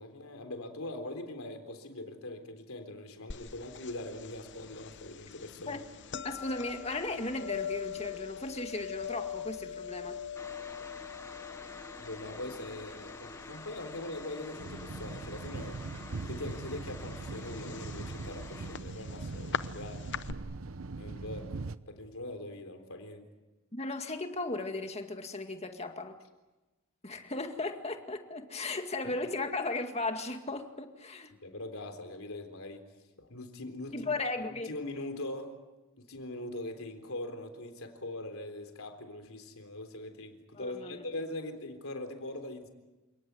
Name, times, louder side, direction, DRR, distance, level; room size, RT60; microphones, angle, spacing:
voice 1, 0.0-5.8 12.0-15.8 16.3-20.0 21.0-23.2 29.0-29.1 31.4-32.8 33.2-34.1 34.5-35.6 36.0-42.7, left 1 dB, 75° left, 6 dB, 3.7 m, -42 dB
sound 1, 3.3-20.3, left 8 dB, 55° left, 0.8 m, -43 dB
voice 2, 6.2-10.2 23.7-26.2 27.0-31.3 33.9-34.7 40.5-41.0, left 2 dB, 30° left, 6 dB, 2.1 m, -36 dB
sound 2, 10.4-18.8, left 2 dB, 15° left, 0.9 m, -48 dB
sound 3, 14.6-21.8, right 3 dB, 70° right, 0.8 m, -41 dB
28.5 x 18.5 x 9.5 m, 1.1 s
head